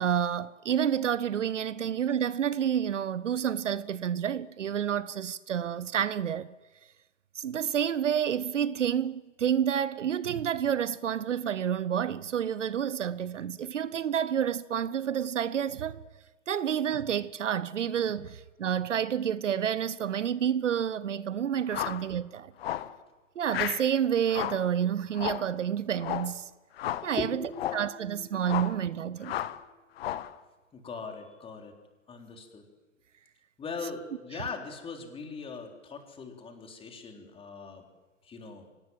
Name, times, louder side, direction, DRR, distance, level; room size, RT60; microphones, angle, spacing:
voice 1, 0.0-6.5 7.3-16.0 16.5-22.5 23.4-26.5 27.0-29.4 34.3-34.4, right 9 dB, 70° right, 0.9 m, -29 dB
sound 1, 21.7-22.1 22.6-22.9 23.5-23.9 24.3-24.7 25.1-25.5 26.0-26.3 26.8-27.1 27.5-27.9 28.4-28.8 29.2-29.6 30.0-30.3, left 12 dB, 50° left, 1.3 m, -33 dB
voice 2, 27.2-28.4 30.7-31.7 32.1-32.6 33.6-37.8 38.2-38.7, left 4 dB, 15° left, 3.6 m, -40 dB
24.5 x 18.5 x 7.8 m
figure-of-eight pair, 115°, 38 cm